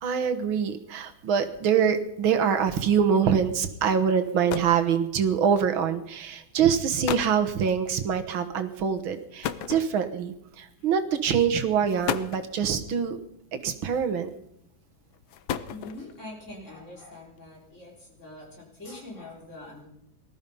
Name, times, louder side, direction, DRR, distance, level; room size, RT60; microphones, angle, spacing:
voice 1, 0.0-13.2 13.5-14.3, right 7 dB, 85° right, 8 dB, 2.1 m, -25 dB
sound 1, 3.9-4.0 4.3-4.9 5.9-6.1 6.7-6.8 7.0-7.4 9.4-10.3 11.2-11.4 11.9-12.5 13.8-14.3 15.1-16.2, left 10 dB, 90° left, 1.6 m, -33 dB
voice 2, 15.7-19.9, left 2 dB, 35° left, -1 dB, 4.2 m, -43 dB
19.0 x 13.0 x 5.4 m, 0.76 s
omnidirectional pair, 2.2 m